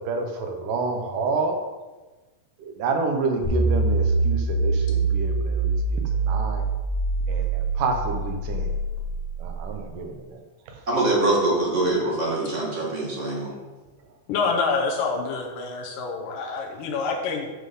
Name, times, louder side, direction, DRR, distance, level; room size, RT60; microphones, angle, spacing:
voice 1, 0.0-1.6 2.6-6.6 7.3-8.7 9.4-10.4 10.7-10.8, right 4 dB, 75° right, 4 dB, 2.3 m, -29 dB
sound 1, 3.4-9.7, right 3 dB, 20° left, 3.3 m, -24 dB
voice 2, 10.9-13.6, right 2 dB, 30° right, -4 dB, 1.4 m, -23 dB
voice 3, 14.3-17.5, left 4 dB, 75° left, 0 dB, 2.5 m, -27 dB
7.6 x 6.7 x 5.4 m, 1.2 s
omnidirectional pair, 4.1 m